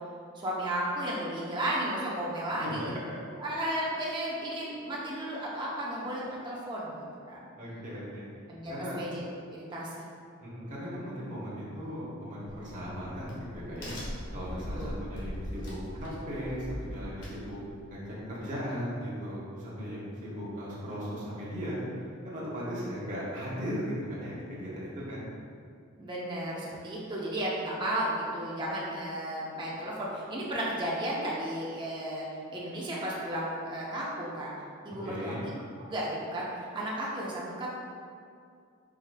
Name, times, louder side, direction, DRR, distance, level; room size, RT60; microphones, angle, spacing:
voice 1, 0.3-2.8 3.4-7.5 8.5-9.2 9.5-10.1 14.7-14.9 26.0-34.5 34.8-35.5 35.9-37.7, right 1 dB, 20° right, -6 dB, 0.6 m, -34 dB
voice 2, 7.6-8.2 8.7-9.0 10.4-13.9 14.3-17.6 17.9-21.8 22.2-25.2 35.0-35.4, equal, 35° right, -7 dB, 1.0 m, -37 dB
Crack, 12.5-17.9, equal, 85° left, 1.2 m, -40 dB
4.8 x 4.4 x 2.2 m, 2.3 s
head